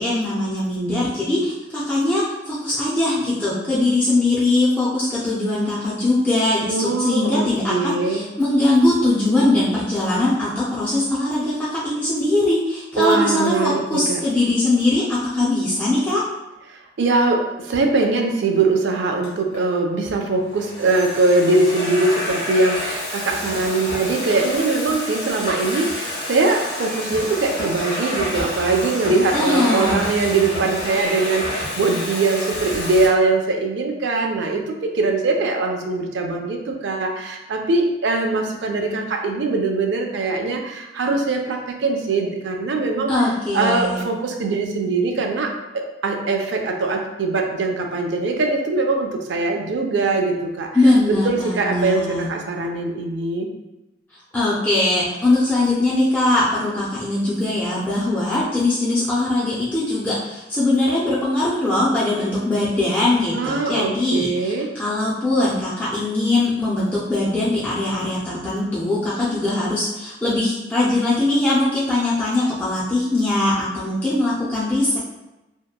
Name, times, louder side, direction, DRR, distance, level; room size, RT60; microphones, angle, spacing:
voice 1, 0.0-16.2 29.3-30.0 43.1-44.0 50.7-52.3 54.3-75.0, left 2 dB, 10° left, -9 dB, 0.4 m, -21 dB
voice 2, 6.6-8.2 13.0-14.2 16.7-43.1 43.5-50.7 51.1-53.5 63.3-64.7, right 3 dB, 70° right, 3 dB, 0.4 m, -22 dB
Domestic sounds home sounds, 19.2-19.6 20.3-33.1, left 1 dB, 60° left, 0.9 m, -29 dB
2.8 x 2.1 x 2.3 m, 0.99 s
head